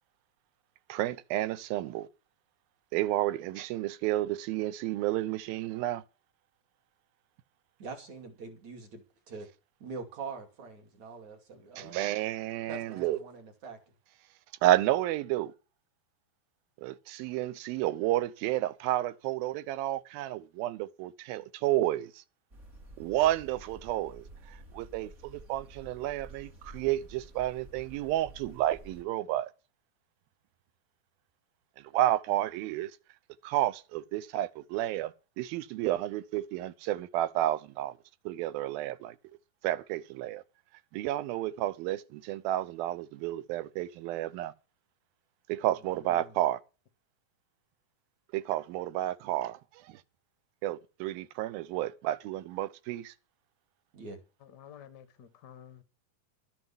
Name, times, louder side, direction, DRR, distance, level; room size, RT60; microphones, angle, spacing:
voice 1, 0.9-2.1 2.9-6.0 11.8-13.2 14.6-15.5 16.8-22.2 23.0-29.5 31.8-32.9 33.4-37.9 38.3-39.2 39.6-40.4 40.9-44.5 45.5-46.6 48.3-50.0 50.6-53.1, right 14 dB, 85° right, 2.6 m, -31 dB
voice 2, 7.8-9.5 9.8-12.0 12.7-13.8 45.8-46.3 53.9-54.2, right 4 dB, 55° right, 3.6 m, -44 dB
sound 1, 22.5-29.0, right 2 dB, 30° right, 1.4 m, -51 dB
voice 3, 54.4-55.8, left 9 dB, 75° left, 0.9 m, -51 dB
12.0 x 7.7 x 7.0 m
omnidirectional pair, 4.1 m